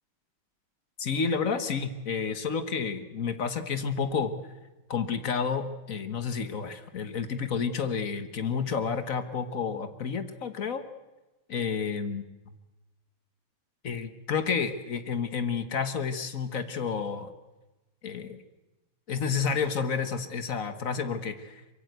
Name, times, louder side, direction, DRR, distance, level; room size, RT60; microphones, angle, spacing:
voice 1, 1.0-4.3 4.9-10.8 11.5-12.2 13.8-17.3 18.0-18.4 19.1-21.6, left 6 dB, 45° left, 10 dB, 1.4 m, -30 dB
24.0 x 22.5 x 8.1 m, 1.1 s
omnidirectional pair, 2.3 m